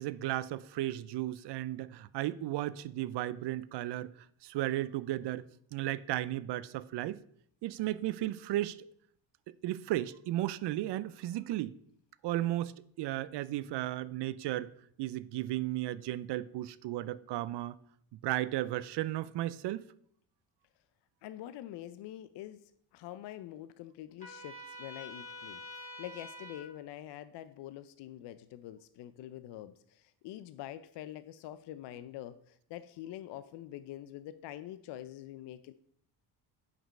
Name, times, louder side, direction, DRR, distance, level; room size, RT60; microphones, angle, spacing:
voice 1, 0.0-4.1 4.4-5.4 5.7-7.2 7.6-8.8 9.6-11.8 12.2-12.7 13.0-14.7 15.0-17.8 18.2-19.8, right 14 dB, 60° right, 0.5 m, -34 dB
voice 2, 21.2-35.7, left 12 dB, 60° left, 0.5 m, -45 dB
Trumpet, 24.2-26.7, left 1 dB, 15° left, 2.7 m, -46 dB
6.1 x 5.1 x 5.4 m
cardioid pair, 85°, 48 cm